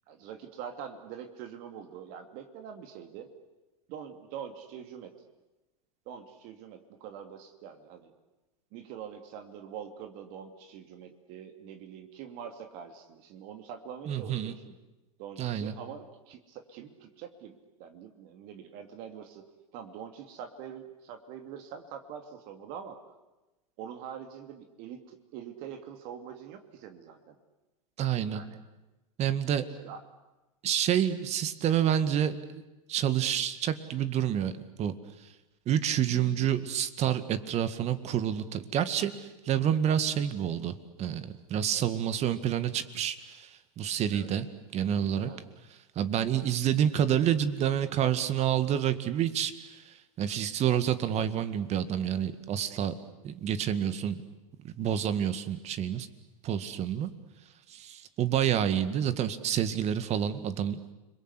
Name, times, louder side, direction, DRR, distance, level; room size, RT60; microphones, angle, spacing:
voice 1, 0.1-3.3 3.9-5.1 6.1-8.1 8.7-14.7 15.2-17.5 17.8-19.4 19.7-23.0 23.8-27.3 28.3-28.6 29.8-30.0 44.1-44.3 45.2-45.4 48.2-48.3, right 8 dB, 55° right, 6 dB, 2.7 m, -44 dB
voice 2, 14.1-14.5 15.4-15.7 28.0-28.4 29.2-29.7 30.6-32.6 32.9-34.5 34.8-34.9 35.7-44.5 44.7-45.3 46.0-52.9 53.2-54.2 54.6-56.1 56.4-57.1 57.7-60.8, right 9 dB, 40° right, 12 dB, 1.9 m, -28 dB
30.0 x 22.0 x 8.3 m, 1.1 s
hypercardioid pair, 105°, 18 cm